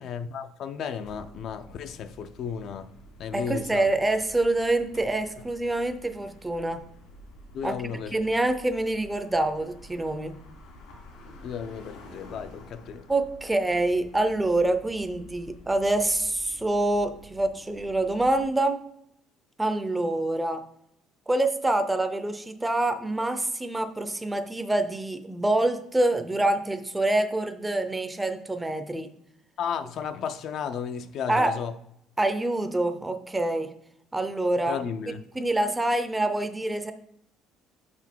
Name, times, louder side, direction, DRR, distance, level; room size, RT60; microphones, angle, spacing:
voice 1, 0.0-2.9 3.2-3.9 7.5-8.1 11.3-13.0 29.6-31.7 34.7-35.2, left 7 dB, 50° left, 0.4 m, -34 dB
sound 1, 1.0-18.4, equal, 85° left, 2.9 m, -49 dB
voice 2, 3.3-6.8 7.6-7.8 8.1-10.4 13.1-18.8 19.6-20.6 21.3-29.1 31.3-31.5 32.2-33.7 34.1-34.8 35.3-36.9, right 2 dB, 10° right, 0.5 m, -26 dB
6.4 x 6.1 x 4.5 m
cardioid pair, 155°, 0 cm